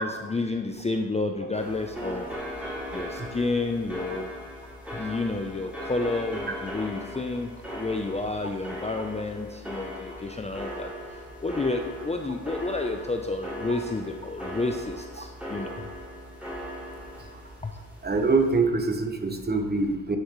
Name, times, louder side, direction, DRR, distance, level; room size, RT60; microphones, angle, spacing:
voice 1, 0.0-2.3 2.9-4.3 4.6-15.8 17.6-17.8, left 3 dB, 15° left, 4 dB, 0.6 m, -30 dB
sound 1, 1.5-18.6, equal, 5° right, 2.9 m, -38 dB
voice 2, 18.0-20.2, right 3 dB, 25° right, 5 dB, 1.2 m, -24 dB
9.9 x 6.4 x 3.2 m, 1.2 s
supercardioid pair, 65°, 38 cm